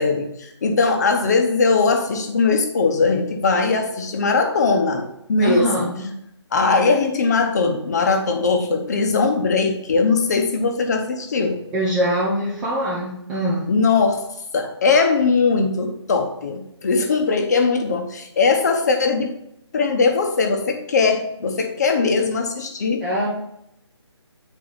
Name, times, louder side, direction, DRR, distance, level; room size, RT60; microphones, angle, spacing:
voice 1, 0.0-5.9 6.5-11.6 13.7-14.3 14.5-19.3 19.7-23.0, left 4 dB, 35° left, 4 dB, 1.0 m, -20 dB
voice 2, 5.4-6.0 11.7-13.7 23.0-23.3, equal, 5° right, -6 dB, 0.5 m, -23 dB
8.0 x 4.6 x 4.0 m, 0.78 s
figure-of-eight pair, 160°, 15 cm